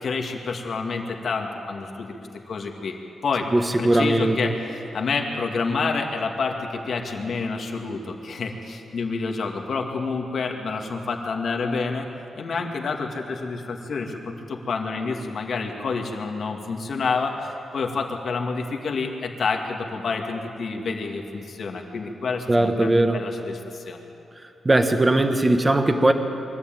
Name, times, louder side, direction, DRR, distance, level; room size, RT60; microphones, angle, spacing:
voice 1, 0.0-2.1 2.5-3.0 3.2-3.5 3.8-12.1 12.4-24.0, left 4 dB, 55° left, 2 dB, 2.1 m, -28 dB
voice 2, 3.5-4.4 22.5-23.2 24.6-26.1, right 1 dB, 15° right, 6 dB, 1.2 m, -19 dB
23.0 x 14.0 x 9.1 m, 2.8 s
wide cardioid pair, 155°, 0 cm